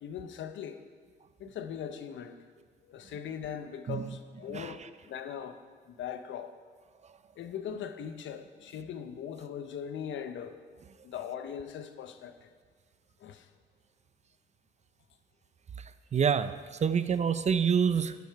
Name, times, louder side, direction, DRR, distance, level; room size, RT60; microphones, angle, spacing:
voice 1, 0.0-0.8 1.4-2.4 2.9-5.6 5.9-6.5 7.4-10.6 11.0-12.5 13.2-13.5, left 8 dB, 70° left, 9 dB, 0.8 m, -40 dB
voice 2, 16.1-16.5 16.8-18.1, right 7 dB, 35° right, 13 dB, 0.5 m, -26 dB
11.0 x 6.8 x 4.7 m, 1.5 s
cardioid pair, 90°, 20 cm